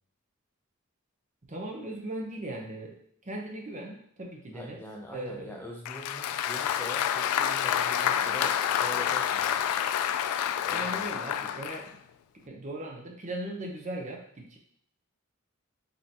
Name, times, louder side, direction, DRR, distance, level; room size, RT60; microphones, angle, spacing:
voice 1, 1.4-3.0 3.2-4.8 5.1-5.7 10.7-12.0 12.5-14.6, right 1 dB, 35° right, 1 dB, 0.7 m, -38 dB
voice 2, 4.5-9.6 10.7-11.1, equal, 10° left, -1 dB, 0.4 m, -43 dB
Applause, 5.9-11.9, left 9 dB, 90° left, 0.3 m, -28 dB
5.2 x 2.8 x 2.8 m, 0.65 s
head